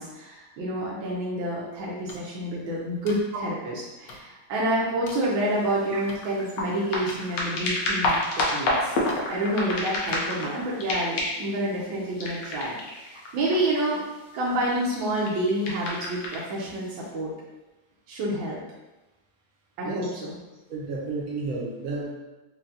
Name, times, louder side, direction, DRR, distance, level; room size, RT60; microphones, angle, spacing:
voice 1, 0.0-9.0 9.3-14.0 14.3-17.3 18.1-18.6 19.8-20.4, right 1 dB, 75° right, -6 dB, 1.4 m, -28 dB
sound 1, 2.1-2.2 3.1-3.2 4.1-4.2 5.1-5.2 6.1-6.2 7.1-7.2 8.1-8.2 9.1-9.2 10.1-10.2, left 4 dB, 85° left, 0.8 m, -43 dB
sound 2, 5.6-10.5 10.8-11.5 12.2-13.8 14.6-16.4 17.1-17.2, left 2 dB, 65° left, 1.3 m, -29 dB
voice 2, 20.7-22.1, right 3 dB, 55° right, -4 dB, 1.0 m, -31 dB
4.4 x 2.8 x 2.7 m, 1.1 s
omnidirectional pair, 2.2 m